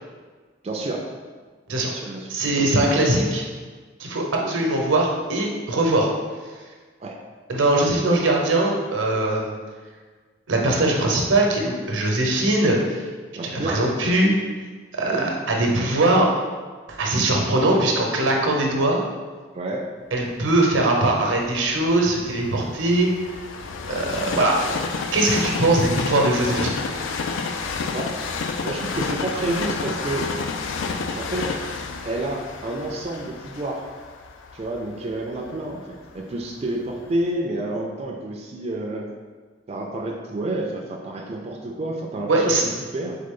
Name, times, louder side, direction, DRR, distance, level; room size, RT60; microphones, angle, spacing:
voice 1, 0.6-1.1 1.9-2.3 4.4-4.5 7.0-7.2 13.4-13.8 15.1-15.3 19.5-19.8 27.9-28.1 28.6-30.2 31.1-31.6 32.0-33.9 34.5-39.1 39.7-42.6 42.9-43.2, right 2 dB, 35° right, 0 dB, 0.4 m, -29 dB
voice 2, 2.3-3.4 4.0-6.1 7.5-9.5 10.5-13.0 13.6-14.3 15.0-16.3 16.9-19.0 20.1-23.1 23.9-24.6 25.1-26.8 42.3-42.6, right 2 dB, 90° right, 0 dB, 0.8 m, -21 dB
Train, 20.5-36.4 37.0-37.1, left 4 dB, 80° left, 0.4 m, -30 dB
3.8 x 3.7 x 3.7 m, 1.5 s
head